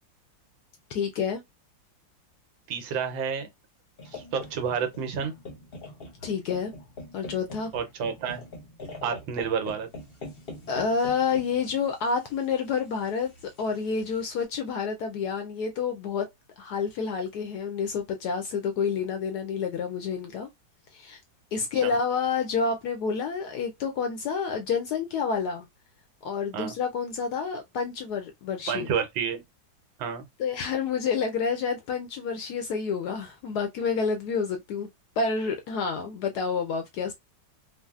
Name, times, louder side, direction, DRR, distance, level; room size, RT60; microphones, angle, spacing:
voice 1, 0.9-1.4 6.2-6.7 7.1-7.7 10.7-13.3 13.6-16.3 16.6-20.5 20.9-21.2 21.5-25.7 26.2-28.9 30.4-34.9 35.2-37.1, left 5 dB, 75° left, 0.9 m, -29 dB
voice 2, 2.7-3.5 4.1-5.3 7.7-8.4 9.0-9.9 21.7-21.9 26.5-26.7 28.7-29.4 30.0-30.2, right 7 dB, 80° right, 1.5 m, -30 dB
sound 1, 4.0-14.4, left 2 dB, 45° left, 0.7 m, -44 dB
3.9 x 2.0 x 2.3 m
omnidirectional pair, 2.1 m